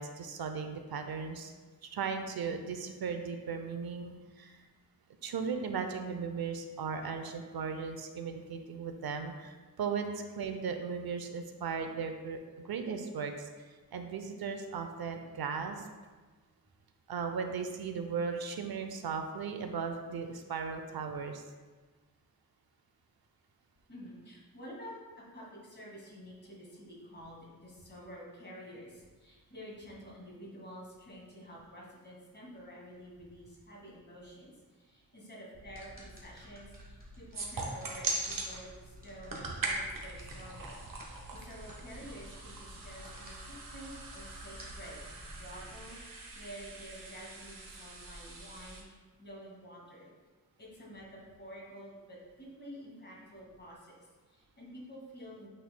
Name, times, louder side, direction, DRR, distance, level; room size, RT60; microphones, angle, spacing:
voice 1, 0.0-1.5 1.8-4.6 5.2-12.4 12.6-13.5 13.9-15.9 17.1-21.4, right 5 dB, 85° right, 6 dB, 0.6 m, -37 dB
voice 2, 23.9-45.0 45.4-50.1 50.6-55.5, equal, 30° left, -5 dB, 1.9 m, -50 dB
sound 1, 35.5-45.8, equal, 25° right, 1.4 m, -52 dB
sound 2, 37.3-38.5 39.1-48.8, right 3 dB, 65° right, 1.1 m, -41 dB
8.6 x 5.6 x 2.2 m, 1.4 s
wide cardioid pair, 175°, 36 cm